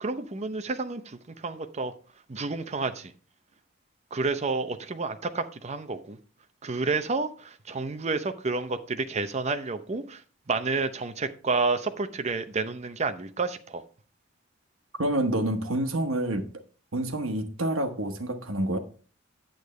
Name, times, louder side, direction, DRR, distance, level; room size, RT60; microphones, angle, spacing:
voice 1, 0.0-1.9 2.3-3.1 4.1-6.2 6.6-10.2 10.5-13.8, right 3 dB, 35° right, 0.6 m, -30 dB
voice 2, 15.0-16.4 16.9-18.8, right 1 dB, 90° right, 1.2 m, -28 dB
8.9 x 8.1 x 3.2 m
head